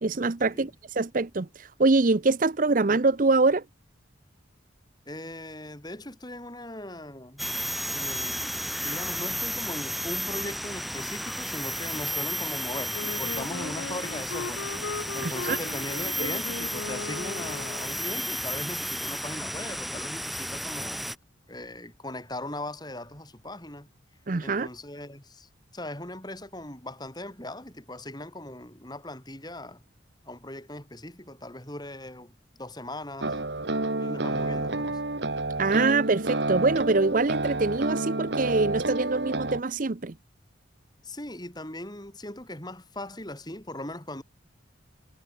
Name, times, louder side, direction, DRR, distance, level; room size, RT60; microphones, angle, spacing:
voice 1, 0.0-3.6 15.2-15.6 24.3-24.7 35.6-40.1, right 3 dB, 40° right, 0.6 m, -24 dB
voice 2, 5.1-7.4 7.9-21.2 21.5-23.9 24.4-29.8 30.3-33.3 34.0-35.0 41.0-44.2, left 1 dB, 20° left, 4.9 m, -39 dB
sound 1, 7.4-21.2, equal, ahead, 2.4 m, -33 dB
Wind instrument woodwind instrument, 12.9-18.1, left 4 dB, 75° left, 0.8 m, -37 dB
sound 2, 33.2-39.6, right 2 dB, 60° right, 1.9 m, -29 dB
head